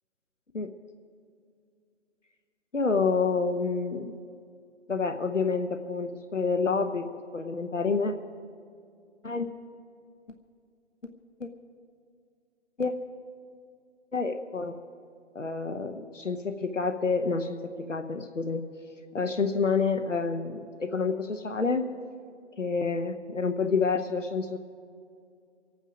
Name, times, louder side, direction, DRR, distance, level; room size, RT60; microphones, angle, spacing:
voice 1, 2.7-4.2 4.9-8.1 9.2-9.5 11.4-11.5 12.8-12.9 14.1-14.8 15.3-18.6 19.1-21.8 22.6-24.6, left 4 dB, 90° left, 5 dB, 1.0 m, -28 dB
24.0 x 9.1 x 5.0 m, 2.4 s
figure-of-eight pair, 135°, 36 cm